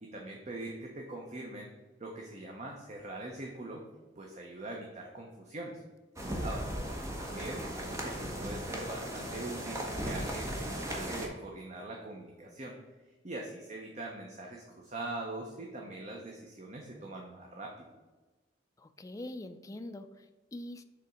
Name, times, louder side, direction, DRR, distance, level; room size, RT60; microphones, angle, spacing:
voice 1, 0.0-1.7 2.0-3.8 4.2-5.8 6.4-6.7 7.2-12.7 13.2-17.7, right 2 dB, 40° right, 0 dB, 0.8 m, -42 dB
sound 1, 6.2-11.3, equal, 15° right, 1.0 m, -37 dB
voice 2, 6.3-6.9 18.8-20.8, left 1 dB, 20° left, 8 dB, 0.4 m, -45 dB
6.8 x 3.5 x 5.0 m, 1.2 s
head